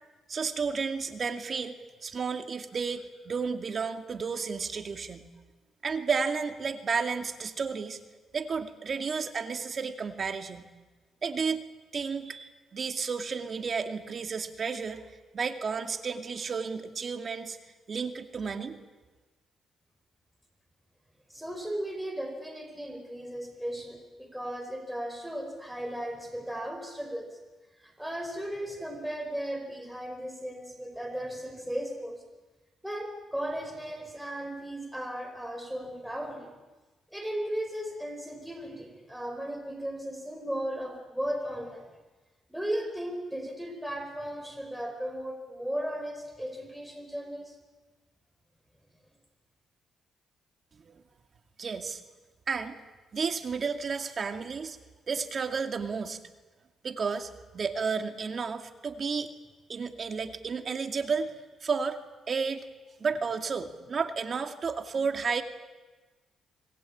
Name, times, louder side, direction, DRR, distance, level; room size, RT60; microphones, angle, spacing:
voice 1, 0.3-5.3 5.8-8.0 8.3-10.7 11.2-11.6 11.9-15.1 15.3-17.6 17.9-18.8 50.8-51.0 51.6-52.0 52.5-52.8 53.1-54.8 55.1-56.2 56.8-59.3 59.7-62.0 62.3-62.6 63.0-65.4, right 5 dB, 50° right, 6 dB, 2.4 m, -32 dB
voice 2, 21.3-27.4 27.8-32.2 32.8-36.5 37.1-41.9 42.5-47.6, equal, 5° right, 5 dB, 5.1 m, -36 dB
26.0 x 20.5 x 8.7 m, 1.2 s
cardioid pair, 70°, 0 cm